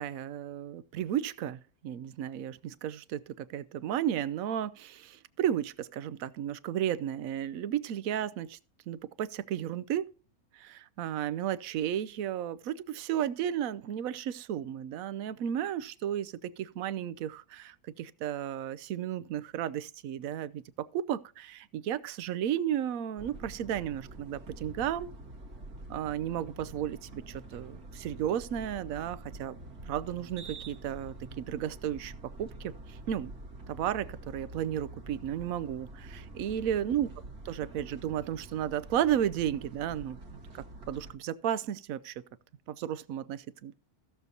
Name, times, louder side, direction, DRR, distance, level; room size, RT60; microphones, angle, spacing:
voice 1, 0.0-8.6 8.9-10.1 10.6-25.1 25.9-29.5 29.9-33.3 33.7-37.1 37.4-42.1 42.7-43.7, right 10 dB, 70° right, 1.0 m, -33 dB
sound 1, 23.2-41.1, right 2 dB, 90° right, 2.1 m, -46 dB
16.0 x 6.7 x 2.8 m
omnidirectional pair, 1.6 m